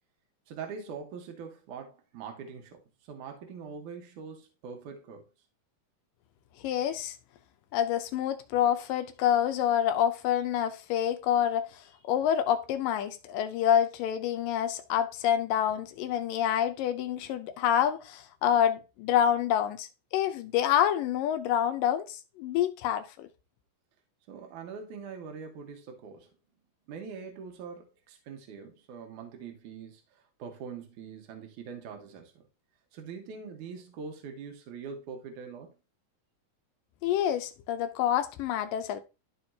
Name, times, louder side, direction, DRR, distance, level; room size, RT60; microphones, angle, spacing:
voice 1, 0.5-5.3 24.3-26.3 26.9-32.4 32.9-35.7, right 6 dB, 70° right, 2.6 m, -43 dB
voice 2, 6.6-7.2 7.7-23.3 37.0-39.0, left 10 dB, 80° left, 2.4 m, -27 dB
13.0 x 4.4 x 2.8 m
omnidirectional pair, 4.0 m